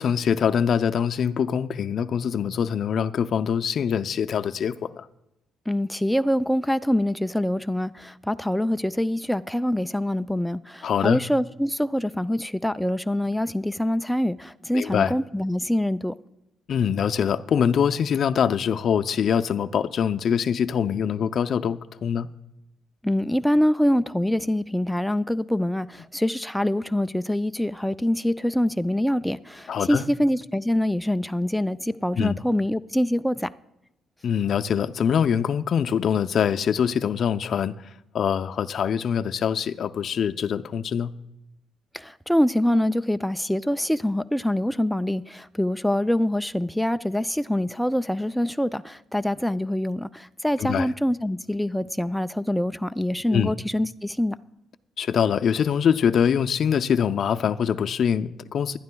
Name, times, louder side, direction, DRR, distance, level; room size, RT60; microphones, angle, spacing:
voice 1, 0.0-5.1 10.8-11.2 14.7-15.1 16.7-22.3 29.7-30.0 32.2-32.4 34.2-37.8 38.1-41.1 50.6-50.9 53.3-53.5 55.0-58.8, left 7 dB, 60° left, 0.5 m, -24 dB
voice 2, 5.7-16.1 23.0-33.5 41.9-54.4, left 1 dB, 5° left, 0.3 m, -25 dB
20.5 x 11.5 x 2.3 m
cardioid pair, 90°, 0 cm